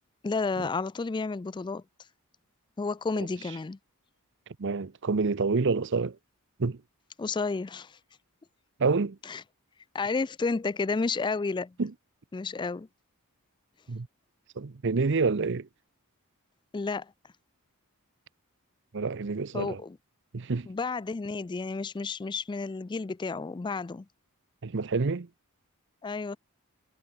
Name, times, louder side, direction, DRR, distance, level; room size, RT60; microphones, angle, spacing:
voice 1, 0.2-1.8 2.8-3.8 7.2-8.0 9.3-9.4 9.9-11.7 12.3-12.9 16.7-17.1 19.5-20.0 20.7-24.1 26.0-26.4, left 4 dB, 20° left, 0.3 m, -31 dB
voice 2, 4.6-6.2 6.6-6.8 8.8-9.2 11.8-11.9 13.9-14.1 14.6-15.7 18.9-19.8 20.3-20.7 24.6-25.3, right 4 dB, 55° right, 0.7 m, -27 dB
head